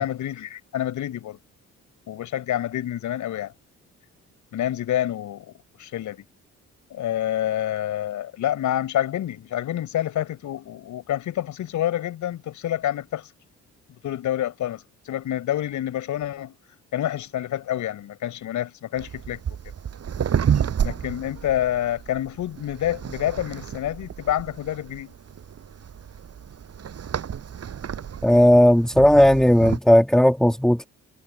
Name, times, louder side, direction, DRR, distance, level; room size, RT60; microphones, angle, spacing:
voice 1, 0.0-1.4 2.1-3.5 4.5-5.5 5.8-6.3 6.9-13.3 14.0-16.5 16.9-19.4 20.8-25.1, left 12 dB, 75° left, 7.0 m, -28 dB
sound 1, 19.0-29.8, right 8 dB, 55° right, 6.3 m, -31 dB
voice 2, 28.2-30.9, left 1 dB, ahead, 1.8 m, -16 dB
cardioid pair, 90°, 30 cm